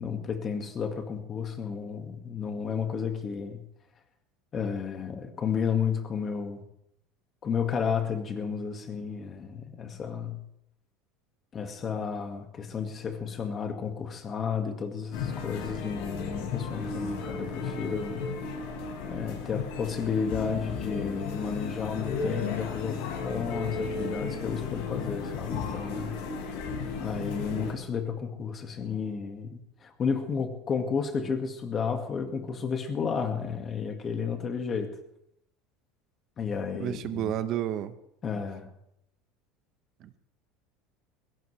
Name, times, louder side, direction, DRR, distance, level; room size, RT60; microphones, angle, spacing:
voice 1, 0.0-3.6 4.5-6.7 7.4-10.4 11.5-18.2 19.1-26.2 27.0-35.0 36.4-37.3 38.2-38.7, left 6 dB, 25° left, 6 dB, 1.9 m, -32 dB
sound 1, 15.1-27.7, left 5 dB, 75° left, 4.6 m, -34 dB
voice 2, 36.8-38.0 40.0-40.2, right 11 dB, 45° right, 12 dB, 0.9 m, -31 dB
20.0 x 17.0 x 3.3 m, 0.77 s
cardioid pair, 150°, 0 cm